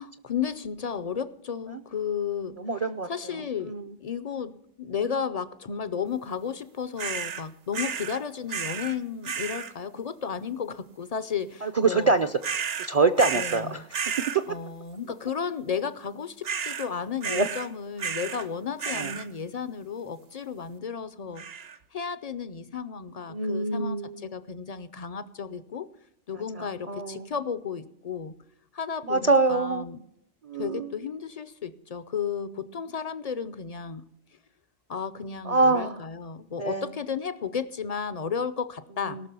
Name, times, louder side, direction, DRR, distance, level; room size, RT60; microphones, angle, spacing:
voice 1, 0.0-2.6 3.1-3.7 4.0-12.1 13.3-13.8 14.5-25.9 26.3-28.4 28.7-30.0 30.6-34.0 34.9-39.2, left 7 dB, 50° left, 14 dB, 0.5 m, -33 dB
voice 2, 2.6-3.1 3.7-3.9 11.6-12.5 12.9-13.8 17.3-17.5 18.9-19.1 23.3-24.2 26.6-27.3 29.1-29.8 30.4-30.9 35.5-36.0 36.6-36.8 39.0-39.2, right 3 dB, 45° right, 10 dB, 0.5 m, -25 dB
sound 1, 7.0-7.4 7.7-8.2 8.5-9.0 9.2-9.7 12.4-13.6 13.9-14.4 16.4-16.9 17.2-17.7 18.0-18.5 18.8-19.3 21.4-21.8, right 7 dB, 60° right, 1.0 m, -32 dB
18.5 x 6.2 x 6.7 m, 0.77 s
omnidirectional pair, 1.2 m